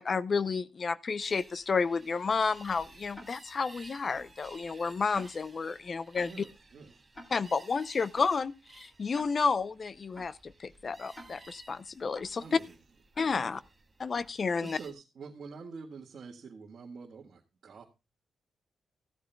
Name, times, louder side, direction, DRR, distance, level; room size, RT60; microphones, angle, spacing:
voice 1, 0.0-6.4 7.3-12.6 13.2-13.6 14.0-14.8, left 5 dB, 35° left, 0.6 m, -31 dB
sound 1, 1.2-14.9, right 3 dB, 20° right, 1.8 m, -56 dB
Tick-tock, 3.1-3.3 4.1-4.3 5.1-5.3 6.1-6.3 7.1-7.3 8.1-8.3 9.1-9.3 10.1-10.3 11.1-11.3 12.1-12.3 13.1-13.3 14.1-14.3, left 1 dB, 20° left, 2.0 m, -48 dB
voice 2, 6.3-7.0 12.4-12.7 13.3-13.6 14.6-17.8, right 5 dB, 50° right, 1.7 m, -46 dB
15.0 x 13.5 x 2.2 m
wide cardioid pair, 145°, 0 cm